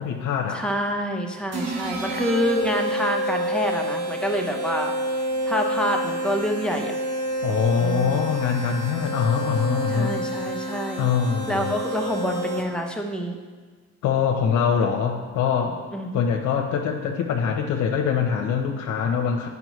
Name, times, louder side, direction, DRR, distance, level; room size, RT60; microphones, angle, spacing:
voice 1, 0.0-0.6 7.4-10.2 11.0-11.7 14.0-15.8 16.1-19.5, left 7 dB, 80° left, 2 dB, 0.7 m, -23 dB
voice 2, 0.5-4.9 5.4-7.0 7.8-8.3 9.9-11.1 11.5-13.4 15.9-16.1, equal, 5° left, 1 dB, 0.9 m, -27 dB
sound 1, 1.5-12.9, right 1 dB, 55° right, 1.1 m, -29 dB
9.4 x 5.3 x 3.1 m, 1.5 s
cardioid pair, 90°, 30 cm